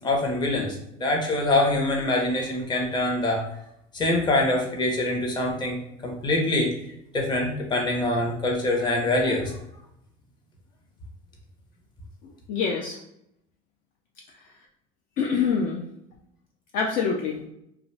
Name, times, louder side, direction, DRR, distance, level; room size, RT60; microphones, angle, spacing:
voice 1, 0.0-3.4 3.9-5.8 6.0-6.7 7.1-9.6, left 2 dB, 25° left, 1 dB, 0.7 m, -24 dB
voice 2, 12.2-13.0 15.2-15.8 16.7-17.4, left 6 dB, 55° left, 0 dB, 0.4 m, -26 dB
2.4 x 2.3 x 3.1 m, 0.79 s
supercardioid pair, 120°, 17 cm